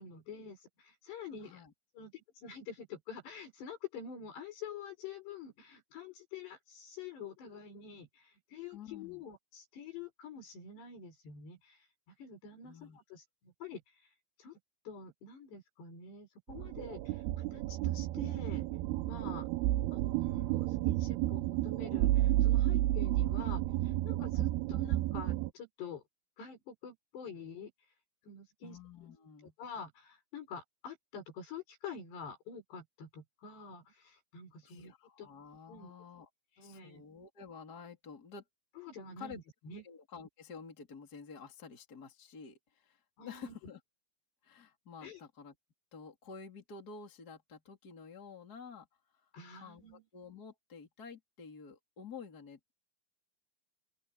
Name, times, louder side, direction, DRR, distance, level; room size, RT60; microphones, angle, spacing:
voice 1, 0.0-1.6 2.0-11.9 12.2-13.8 14.4-14.6 14.9-18.7 19.1-19.5 19.9-26.0 26.4-27.7 28.2-28.8 29.6-34.9 35.2-35.3 35.7-35.9 36.6-37.0 38.8-39.8 43.2-43.6 45.0-45.2 49.3-50.0, left 5 dB, 80° left, 9.1 m, -47 dB
voice 2, 1.4-1.7 8.7-9.2 12.6-13.0 28.6-29.5 34.6-36.3 36.6-38.4 39.2-39.4 39.8-43.8 44.4-45.5 45.9-48.9 49.2-49.3 49.6-52.7, left 5 dB, 25° left, 3.7 m, -50 dB
sound 1, 16.5-25.5, right 15 dB, 80° right, 2.7 m, -31 dB
open air
omnidirectional pair, 4.8 m